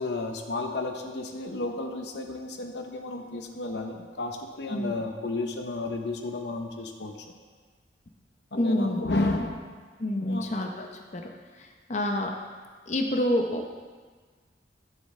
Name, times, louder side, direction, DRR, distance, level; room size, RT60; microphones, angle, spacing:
voice 1, 0.0-7.1 8.5-9.7 10.1-10.5, left 2 dB, 70° left, 4 dB, 0.8 m, -32 dB
voice 2, 8.6-9.0 10.0-10.9 11.1-11.2 11.6-12.3 12.9-13.6, left 1 dB, 40° left, 2 dB, 0.8 m, -27 dB
13.0 x 7.3 x 3.3 m, 1.5 s
head